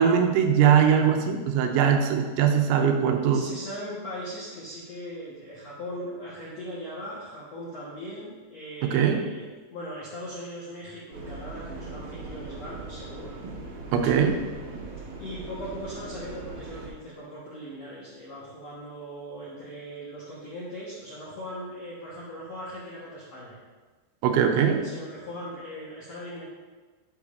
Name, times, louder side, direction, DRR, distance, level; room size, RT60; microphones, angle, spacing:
voice 1, 0.0-3.4 8.8-9.2 13.9-14.4 24.2-24.9, right 8 dB, 90° right, 4 dB, 3.0 m, -21 dB
voice 2, 3.3-9.4 9.7-13.3 15.2-23.6 24.8-26.4, equal, 70° left, -8 dB, 1.5 m, -39 dB
sound 1, 11.1-16.9, right 3 dB, 55° right, 1.8 m, -40 dB
9.7 x 8.0 x 2.6 m, 1.3 s
omnidirectional pair, 5.3 m